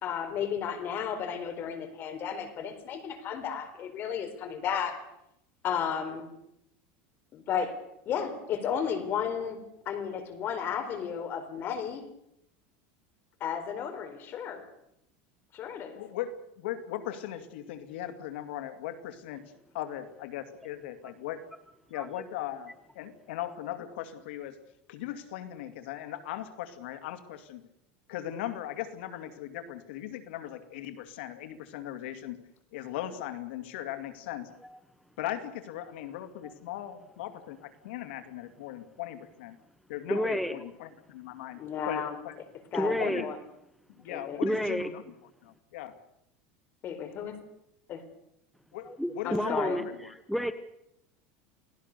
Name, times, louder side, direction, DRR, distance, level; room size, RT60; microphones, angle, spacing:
voice 1, 0.0-5.0 5.6-6.3 7.3-7.8 8.1-9.6 9.9-12.0 13.4-14.6 15.5-16.0 41.5-42.2 42.7-43.4 44.1-44.4 46.8-47.4 47.9-48.0 49.2-49.8, left 7 dB, 35° left, 7 dB, 4.3 m, -33 dB
voice 2, 16.0-21.4 21.9-24.6 24.9-27.6 28.1-32.4 32.7-34.5 35.2-39.6 39.9-41.6 41.9-42.4 42.8-43.3 44.0-45.0 45.4-45.9 48.7-50.4, left 12 dB, 80° left, 9 dB, 2.3 m, -38 dB
voice 3, 40.1-40.5 42.7-43.2 44.4-44.9 48.9-49.8 50.3-50.5, equal, ahead, 11 dB, 1.0 m, -29 dB
29.0 x 18.5 x 6.8 m, 0.82 s
supercardioid pair, 145°, 6 cm